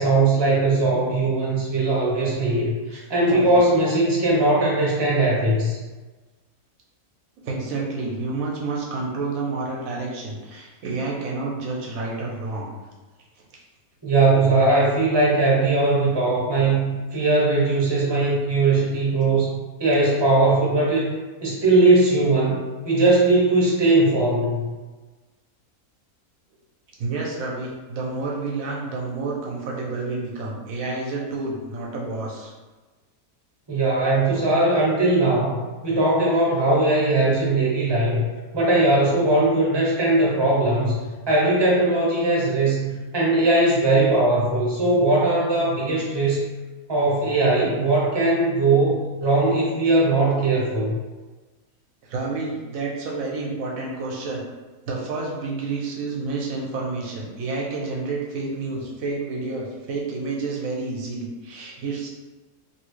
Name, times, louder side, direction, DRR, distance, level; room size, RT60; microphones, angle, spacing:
voice 1, 0.0-5.8 14.0-21.1 21.4-24.7 33.7-38.3 38.5-40.9 41.3-46.4 46.9-50.9, right 2 dB, 25° right, -5 dB, 0.7 m, -20 dB
voice 2, 7.4-12.7 27.0-32.5 52.1-54.4 54.8-62.1, right 3 dB, 70° right, -2 dB, 1.1 m, -29 dB
2.9 x 2.7 x 3.1 m, 1.2 s
omnidirectional pair, 1.6 m